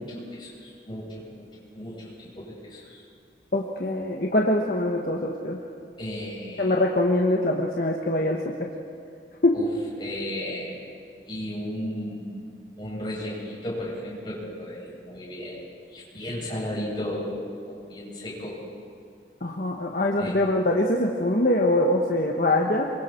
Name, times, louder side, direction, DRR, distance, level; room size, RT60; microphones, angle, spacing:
voice 1, 0.0-1.4 1.7-3.0 6.0-6.7 9.5-9.7 10.0-10.8 11.3-12.4 12.8-15.6 15.9-18.6 20.2-20.4, left 1 dB, 25° left, -6 dB, 7.9 m, -34 dB
voice 2, 3.5-5.6 6.6-8.7 9.4-9.6 19.4-22.9, left 1 dB, 50° left, 0 dB, 1.4 m, -23 dB
27.5 x 24.0 x 4.6 m, 2.4 s
head